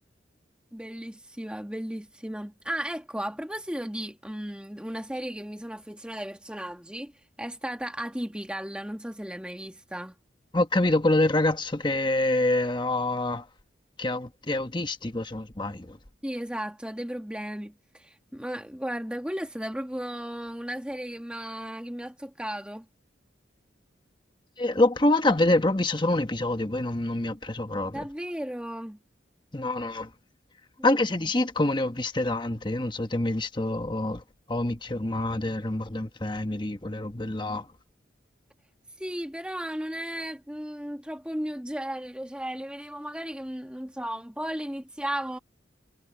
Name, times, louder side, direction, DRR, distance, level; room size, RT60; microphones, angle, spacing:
voice 1, 0.7-7.1 7.4-10.1 16.2-22.8 27.9-29.0 39.0-45.4, equal, 5° right, 1.5 m, -35 dB
voice 2, 10.5-13.5 14.0-16.0 24.6-28.1 29.5-30.1 30.8-34.2 34.5-37.7, left 2 dB, 25° left, 1.1 m, -26 dB
head